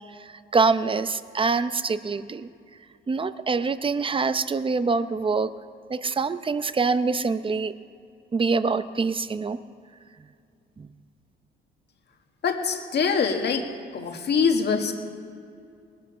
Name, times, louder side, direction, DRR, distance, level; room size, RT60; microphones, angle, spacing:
voice 1, 0.2-2.5 3.1-5.5 5.9-7.7 8.3-9.6 10.8-10.9, right 4 dB, 25° right, 13 dB, 0.7 m, -25 dB
voice 2, 12.4-13.7 13.9-14.9, left 5 dB, 60° left, 4 dB, 1.7 m, -24 dB
19.5 x 12.5 x 5.6 m, 2.4 s
cardioid pair, 90°, 20 cm